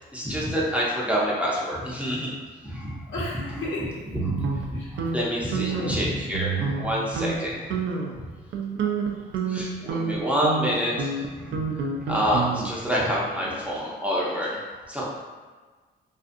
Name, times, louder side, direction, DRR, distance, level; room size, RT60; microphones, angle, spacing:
voice 1, 0.1-2.3 2.6-3.0 4.3-7.8 8.1-8.2 9.5-11.7 12.0-15.1, equal, 5° right, -5 dB, 0.6 m, -27 dB
voice 2, 3.1-4.0 4.7-5.0 5.7-6.0 13.5-13.8, left 1 dB, 75° left, -6 dB, 0.9 m, -34 dB
sound 1, 4.2-5.2 5.5-5.9 6.3-6.9 7.2-7.4 7.7-8.1 8.5-12.9, right 5 dB, 70° right, 0.4 m, -28 dB
2.5 x 2.4 x 2.5 m, 1.3 s
cardioid pair, 90°, 20 cm